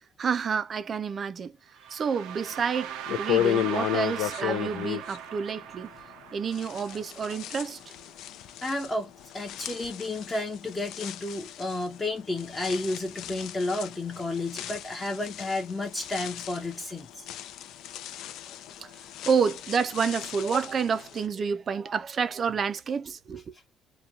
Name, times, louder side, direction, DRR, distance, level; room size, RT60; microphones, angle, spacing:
voice 1, 0.2-1.5 1.9-5.9 6.3-7.9 18.8-18.9 19.3-23.4, right 6 dB, 35° right, 0.4 m, -29 dB
sound 1, 1.7-7.7, right 10 dB, 85° right, 0.5 m, -39 dB
sound 2, 2.5-2.6 3.1-6.2 6.5-21.2, left 12 dB, 70° left, 0.4 m, -35 dB
voice 2, 8.6-17.5, left 2 dB, 15° left, 0.7 m, -32 dB
2.9 x 2.2 x 2.3 m
cardioid pair, 150°, 0 cm